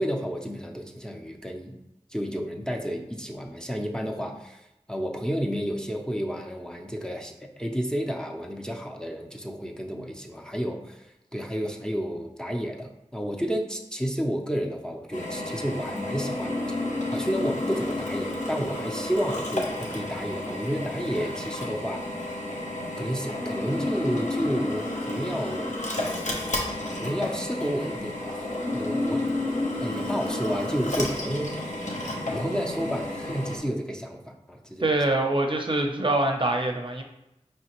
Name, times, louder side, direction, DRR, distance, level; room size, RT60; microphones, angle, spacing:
voice 1, 0.0-1.8 2.1-16.8 17.1-22.0 23.0-25.7 26.9-28.4 28.7-29.2 29.8-34.9, equal, 5° left, 2 dB, 0.5 m, -31 dB
Drill, 15.1-33.6, left 1 dB, 85° left, 0.8 m, -31 dB
voice 2, 34.8-37.0, right 2 dB, 45° right, 2 dB, 0.5 m, -24 dB
5.0 x 3.1 x 3.0 m, 0.91 s
wide cardioid pair, 50°, 12 cm